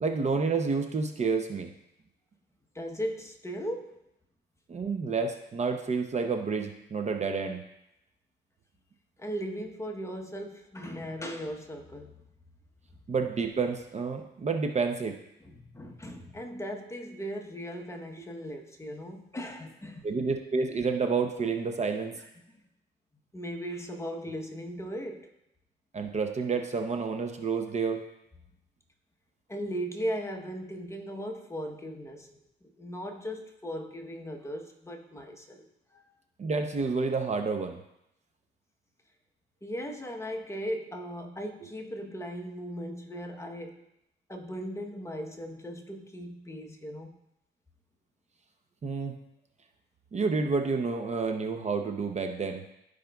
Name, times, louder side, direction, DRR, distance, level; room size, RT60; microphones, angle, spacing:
voice 1, 0.0-1.7 4.7-7.6 13.1-15.2 20.0-22.1 25.9-28.0 36.4-37.8 48.8-49.1 50.1-52.7, right 4 dB, 35° right, 5 dB, 0.7 m, -29 dB
voice 2, 2.7-4.0 9.2-12.2 15.4-20.1 22.1-22.6 23.3-25.3 29.5-36.0 39.6-43.9 44.3-47.2, equal, 15° left, 3 dB, 1.0 m, -38 dB
14.0 x 5.1 x 2.3 m, 0.83 s
cardioid pair, 90°, 20 cm